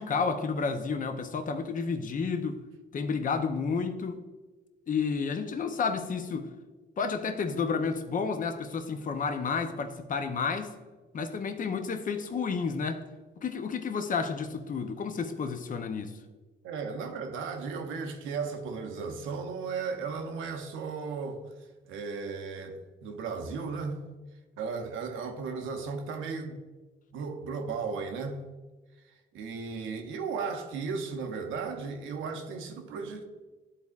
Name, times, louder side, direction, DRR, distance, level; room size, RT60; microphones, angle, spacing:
voice 1, 0.0-2.6 2.9-4.2 4.9-6.5 7.0-10.7 11.1-13.0 13.4-16.1, left 5 dB, 40° left, 0.7 m, -31 dB
voice 2, 16.6-21.4 21.9-24.1 24.6-26.6 27.1-28.4 29.1-33.2, right 5 dB, 90° right, 0.8 m, -35 dB
11.5 x 4.1 x 2.4 m
cardioid pair, 90°, 20 cm